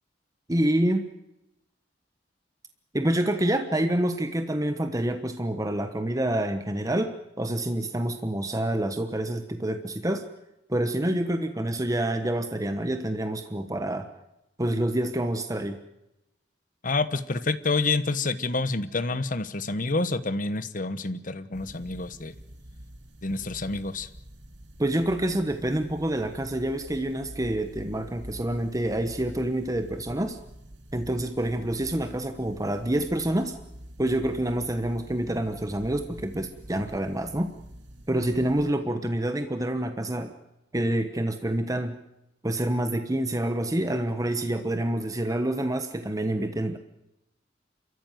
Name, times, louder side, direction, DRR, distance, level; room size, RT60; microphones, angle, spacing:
voice 1, 0.5-1.1 2.9-10.2 10.7-14.1 14.6-15.8 24.8-30.4 30.9-33.6 34.0-37.5 38.1-40.3 40.7-41.9 42.4-46.8, right 1 dB, 20° right, 7 dB, 1.2 m, -27 dB
voice 2, 16.8-22.3 23.2-24.1, left 3 dB, 50° left, 13 dB, 1.2 m, -28 dB
sound 1, 21.5-38.7, equal, 85° right, 2.2 m, -46 dB
28.5 x 14.5 x 9.4 m, 0.88 s
head